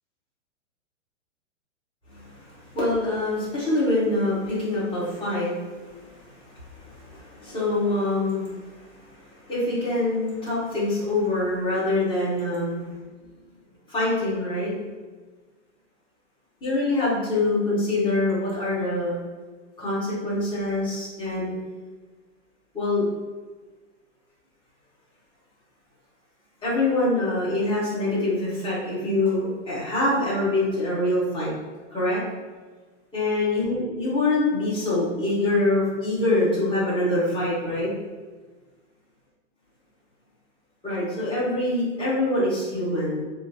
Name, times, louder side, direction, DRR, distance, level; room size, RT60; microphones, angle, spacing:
voice 1, 2.1-12.9 13.9-14.7 16.6-19.2 19.8-21.5 22.7-23.1 26.6-31.5 31.9-32.2 33.1-37.9 40.8-43.2, left 2 dB, 15° left, -9 dB, 1.4 m, -25 dB
4.3 x 2.2 x 2.7 m, 1.3 s
hypercardioid pair, 140°, 38 cm